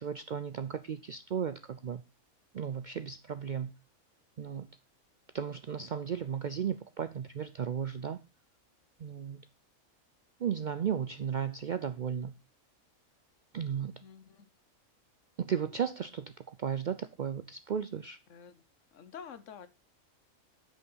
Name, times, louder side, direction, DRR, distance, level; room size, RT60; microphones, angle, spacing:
voice 1, 0.0-2.0 2.5-3.7 4.4-4.7 5.3-8.2 9.0-9.5 10.4-12.3 13.5-13.9 15.4-18.2, right 8 dB, 85° right, 12 dB, 0.4 m, -35 dB
voice 2, 14.0-14.5 18.3-18.6 18.9-19.7, left 7 dB, 65° left, 14 dB, 1.1 m, -48 dB
9.4 x 5.4 x 5.5 m, 0.29 s
omnidirectional pair, 1.5 m